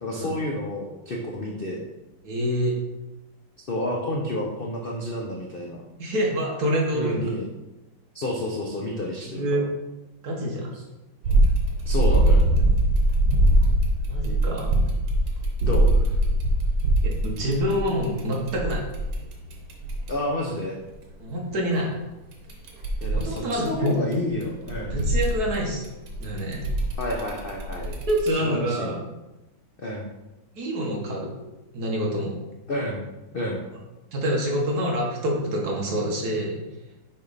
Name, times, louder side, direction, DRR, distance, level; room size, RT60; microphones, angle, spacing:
voice 1, 0.0-1.8 3.6-5.8 6.9-7.5 8.1-9.6 11.8-12.5 15.6-16.0 20.1-20.8 23.0-25.0 27.0-27.9 28.4-29.0 29.8-30.1 32.7-33.0 33.3-33.6, left 1 dB, 60° left, -1 dB, 0.5 m, -30 dB
voice 2, 2.2-2.8 6.0-7.3 9.2-9.6 10.2-10.8 14.1-14.8 17.0-18.8 21.2-21.9 23.1-23.9 24.9-25.8 26.2-26.7 27.8-29.0 30.6-31.3 31.7-32.4 34.1-36.6, equal, 55° right, -1 dB, 1.7 m, -26 dB
sound 1, 11.2-20.1 22.3-24.1 24.4-28.3, right 1 dB, 85° right, 1.9 m, -22 dB
6.5 x 5.2 x 4.0 m, 1.0 s
omnidirectional pair, 2.1 m